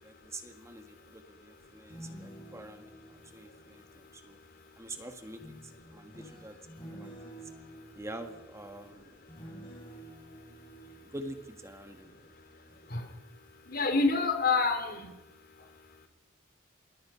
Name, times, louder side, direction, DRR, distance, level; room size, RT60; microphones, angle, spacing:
voice 1, 0.0-4.4 4.8-6.6 6.9-7.4 8.0-9.1 11.0-12.1, right 1 dB, 15° right, 6 dB, 1.7 m, -46 dB
sound 1, 1.7-4.6 5.4-12.3 12.7-13.0, right 1 dB, 25° left, 6.5 m, -50 dB
voice 2, 13.7-15.1, left 4 dB, 50° left, 7 dB, 3.6 m, -27 dB
26.5 x 22.0 x 5.8 m, 0.98 s
head